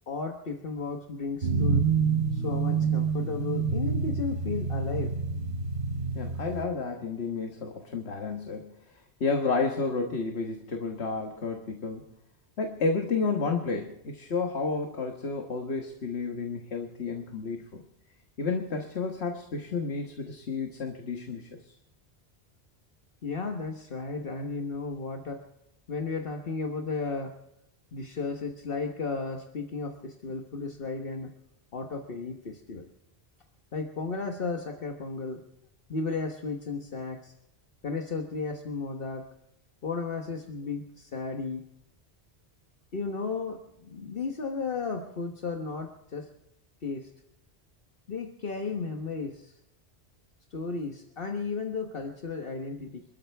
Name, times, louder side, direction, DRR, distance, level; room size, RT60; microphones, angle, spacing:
voice 1, 0.1-1.9 2.3-5.1 23.2-25.4 25.9-27.3 27.9-31.3 31.7-32.9 33.7-35.4 35.9-37.3 37.8-39.3 39.8-41.6 42.9-46.3 46.8-47.1 48.1-49.6 50.5-53.0, left 4 dB, 60° left, 3 dB, 1.4 m, -34 dB
sound 1, 1.4-6.7, right 5 dB, 80° right, 1.4 m, -27 dB
voice 2, 6.1-12.0 12.6-17.8 18.4-21.7, left 4 dB, 80° left, 3 dB, 1.6 m, -31 dB
27.0 x 13.0 x 3.4 m, 0.82 s
omnidirectional pair, 1.1 m